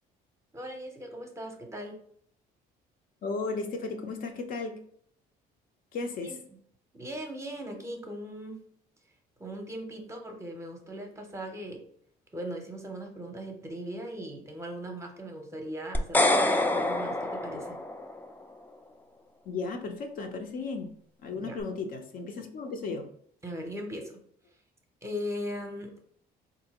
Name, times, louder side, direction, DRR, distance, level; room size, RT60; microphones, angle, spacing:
voice 1, 0.5-2.0 6.2-6.4 6.9-8.6 9.4-11.8 12.3-17.8 21.3-21.6 23.4-24.2 25.0-26.1, equal, 15° right, 3 dB, 0.7 m, -39 dB
voice 2, 3.2-4.8 5.9-6.4 19.5-20.9 21.2-23.1, left 4 dB, 55° left, 4 dB, 0.6 m, -35 dB
sound 1, 15.9-18.2, left 1 dB, 10° left, 0.3 m, -26 dB
3.7 x 2.6 x 2.9 m, 0.64 s
cardioid pair, 110°, 17 cm